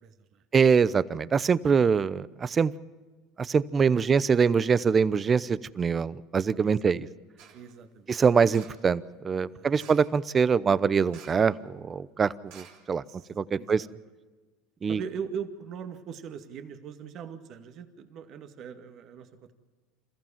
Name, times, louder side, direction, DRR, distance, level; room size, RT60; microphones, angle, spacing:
voice 1, 0.0-0.4 3.9-4.0 6.6-6.9 7.5-8.2 9.5-9.8 13.1-13.3 13.6-13.9 14.9-19.5, right 7 dB, 50° right, 8 dB, 2.2 m, -41 dB
voice 2, 0.5-2.7 3.4-7.1 8.1-13.0 13.4-13.8 14.8-15.0, right 6 dB, 30° right, 19 dB, 0.8 m, -24 dB
sound 1, 7.4-7.7 8.5-8.9 9.8-10.2 11.1-11.6 11.8-11.9 12.5-13.3 13.8-13.9, right 8 dB, 65° right, 3.4 m, -52 dB
27.5 x 15.0 x 7.4 m, 1.4 s
hypercardioid pair, 90°, 0 cm